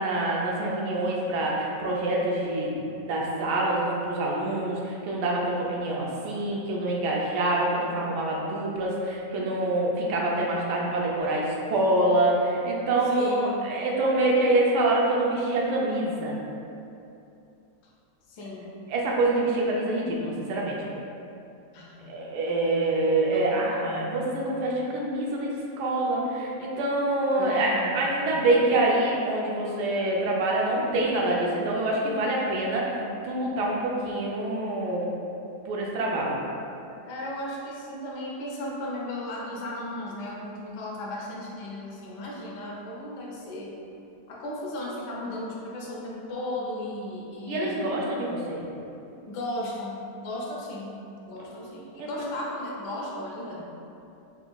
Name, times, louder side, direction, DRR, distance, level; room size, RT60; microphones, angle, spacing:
voice 1, 0.0-16.4 18.9-20.8 22.1-25.5 25.8-32.8 33.2-35.0 35.6-36.4 47.5-48.7 52.0-52.1, right 2 dB, 90° right, -3 dB, 1.2 m, -26 dB
voice 2, 13.0-13.7 18.3-18.7 21.7-22.1 23.3-24.4 27.4-28.4 37.0-43.7 44.3-47.9 49.3-51.0 51.3-53.6, left 1 dB, 90° left, -4 dB, 1.3 m, -36 dB
4.5 x 2.5 x 2.2 m, 2.7 s
omnidirectional pair, 1.7 m